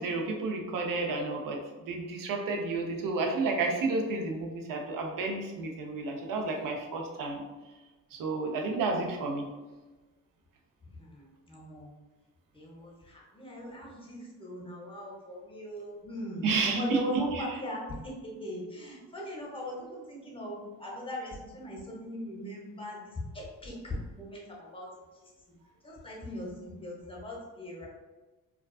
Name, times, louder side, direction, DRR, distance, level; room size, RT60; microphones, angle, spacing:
voice 1, 0.0-1.6 1.9-7.4 8.1-9.5 16.4-17.0 17.4-17.5, right 3 dB, 60° right, 1 dB, 0.6 m, -31 dB
voice 2, 10.8-11.9 12.5-24.9 25.8-27.9, equal, 15° left, -3 dB, 0.7 m, -39 dB
2.3 x 2.3 x 2.3 m, 1.2 s
supercardioid pair, 70°, 38 cm